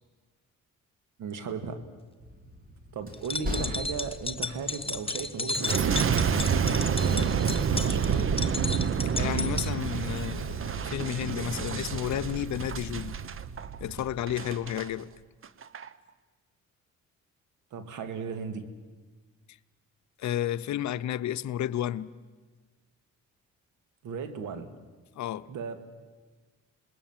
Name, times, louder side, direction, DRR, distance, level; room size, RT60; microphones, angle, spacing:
voice 1, 1.2-1.8 2.9-5.9 7.0-8.5 17.7-18.7 24.0-24.7 25.5-25.8, right 6 dB, 80° right, 2.4 m, -36 dB
Train, 2.2-10.8, left 1 dB, 30° right, 3.6 m, -43 dB
sound 1, 3.1-9.7, left 3 dB, 20° left, 1.0 m, -33 dB
Boom, 5.5-14.9 15.4-15.9, right 6 dB, 45° right, 1.0 m, -28 dB
voice 2, 9.1-13.2 13.8-15.1 20.2-22.1 25.2-25.5, left 11 dB, 65° left, 0.8 m, -32 dB
27.0 x 20.5 x 7.5 m
cardioid pair, 90°, 30 cm